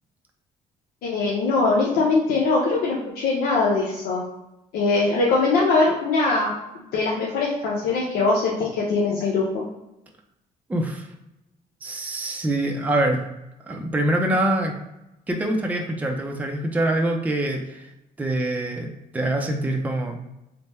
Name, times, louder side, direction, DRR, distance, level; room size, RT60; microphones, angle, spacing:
voice 1, 1.0-4.2 4.7-6.5 6.9-9.6, left 3 dB, 90° left, -4 dB, 0.7 m, -21 dB
voice 2, 10.7-11.1 11.8-13.2 13.6-14.7 15.3-17.9 18.2-20.2, right 1 dB, 10° right, 2 dB, 0.5 m, -24 dB
3.4 x 2.1 x 4.1 m, 0.90 s
cardioid pair, 120°, 16 cm